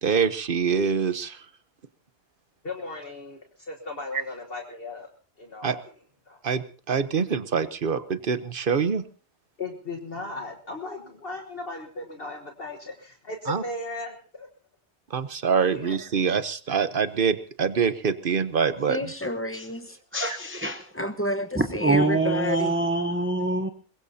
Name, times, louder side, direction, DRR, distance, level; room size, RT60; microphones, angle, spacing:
voice 1, 0.0-1.5 4.1-4.2 5.6-5.8 6.4-9.0 13.5-13.6 15.1-19.1 20.3-20.4, right 6 dB, 50° right, 12 dB, 1.1 m, -25 dB
voice 2, 2.6-5.1 5.4-5.8 6.3-6.4 9.6-14.5 15.7-16.0, left 2 dB, 55° left, 3 dB, 1.6 m, -37 dB
voice 3, 18.9-20.0 20.9-22.8, left 1 dB, 10° left, 7 dB, 1.1 m, -30 dB
voice 4, 20.1-20.8 21.6-23.7, right 2 dB, 10° right, 7 dB, 0.8 m, -24 dB
22.0 x 21.5 x 2.8 m, 0.37 s
omnidirectional pair, 1.2 m